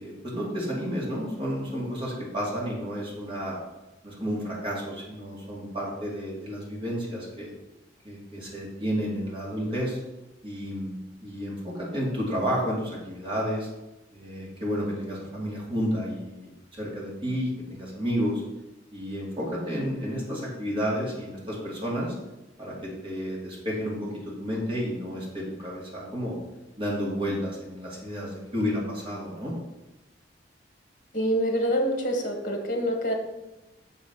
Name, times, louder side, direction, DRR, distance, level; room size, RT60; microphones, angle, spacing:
voice 1, 0.0-3.6 4.0-7.5 8.0-10.0 10.4-13.7 14.1-18.4 18.9-22.1 22.6-24.1 24.4-26.4 26.8-29.5, equal, 30° right, -4 dB, 2.2 m, -31 dB
voice 2, 31.1-33.1, equal, 45° left, 2 dB, 1.3 m, -26 dB
6.5 x 4.2 x 5.4 m, 0.98 s
head